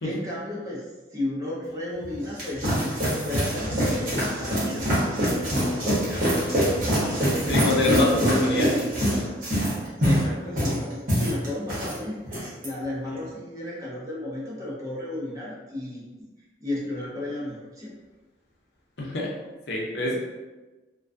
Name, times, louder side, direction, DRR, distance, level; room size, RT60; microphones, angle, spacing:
voice 1, 0.0-4.9 10.0-12.2 12.6-16.0 16.6-17.9, left 1 dB, 20° right, -6 dB, 0.5 m, -33 dB
sound 1, 2.0-12.0 12.3-12.7, equal, 50° right, 0.9 m, -24 dB
voice 2, 7.5-8.8 13.1-13.2 19.0-19.3 19.7-20.2, left 2 dB, 75° left, -3 dB, 0.6 m, -26 dB
2.3 x 2.2 x 2.5 m, 1.2 s
head